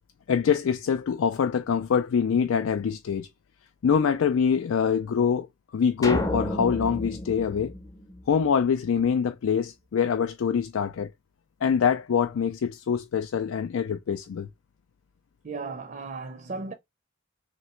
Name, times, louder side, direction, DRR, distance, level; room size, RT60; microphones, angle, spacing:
voice 1, 0.3-3.3 3.8-5.5 5.7-7.7 8.3-11.1 11.6-14.5, left 7 dB, 70° left, 0.4 m, -24 dB
sound 1, 6.0-8.6, left 1 dB, 15° left, 0.6 m, -31 dB
voice 2, 15.4-16.7, right 4 dB, 40° right, 0.5 m, -35 dB
3.1 x 3.0 x 4.3 m
head